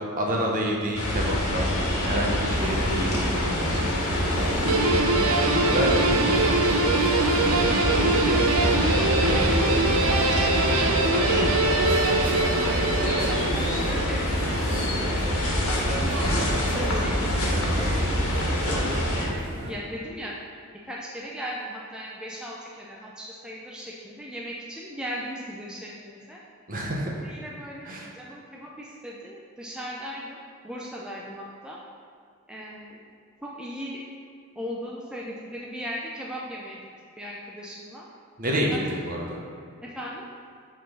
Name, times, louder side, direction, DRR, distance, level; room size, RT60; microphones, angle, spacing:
voice 1, 0.0-1.7 2.0-5.2 5.5-7.5 7.9-11.8 26.7-27.3 27.8-28.1 38.4-39.4, equal, 40° right, -1 dB, 1.0 m, -30 dB
sound 1, 0.9-19.3, equal, 85° left, 1.5 m, -26 dB
sound 2, 2.5-19.7, equal, 55° right, 1.3 m, -34 dB
Guitar, 4.7-14.0, right 2 dB, 70° right, 0.6 m, -23 dB
voice 2, 12.3-14.7 15.1-18.4 19.1-20.4 20.9-26.4 27.2-31.8 32.5-33.0 33.4-34.0 34.6-36.8 37.2-38.1 38.7-38.8 39.8-40.2, equal, 5° right, -4 dB, 0.5 m, -38 dB
6.4 x 3.8 x 5.5 m, 2.3 s
head